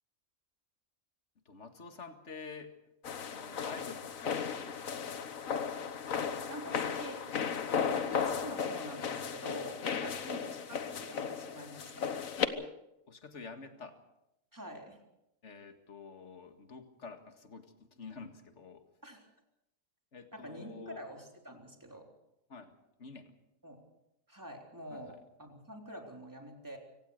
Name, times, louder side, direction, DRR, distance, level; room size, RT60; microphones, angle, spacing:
voice 1, 1.5-2.7 3.3-5.2 10.0-10.2 12.5-12.8 13.1-14.0 15.4-18.8 20.1-21.0 22.5-22.7 23.0-23.4 24.9-25.2, left 5 dB, 60° left, 7 dB, 2.2 m, -49 dB
sound 1, 3.0-12.5, left 6 dB, 80° left, 1.6 m, -35 dB
voice 2, 6.5-7.2 7.9-12.3 14.5-15.0 19.0-19.2 20.3-22.1 23.6-23.8 24.3-26.8, right 1 dB, 15° right, 2 dB, 3.6 m, -46 dB
25.0 x 17.0 x 6.5 m, 0.85 s
omnidirectional pair, 1.4 m